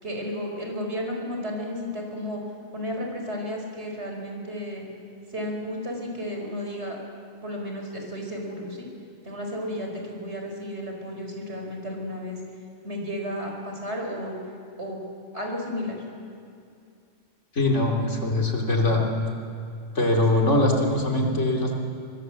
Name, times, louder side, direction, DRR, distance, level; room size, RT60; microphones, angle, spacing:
voice 1, 0.0-2.4 2.7-4.9 5.3-7.0 7.4-8.9 9.2-12.4 12.8-14.4 14.8-15.0 15.3-16.0 20.1-20.6, equal, 55° right, 1 dB, 5.3 m, -33 dB
voice 2, 17.5-19.0 19.9-21.7, left 2 dB, 65° left, 0 dB, 3.4 m, -22 dB
24.0 x 22.5 x 7.8 m, 2.4 s
omnidirectional pair, 1.3 m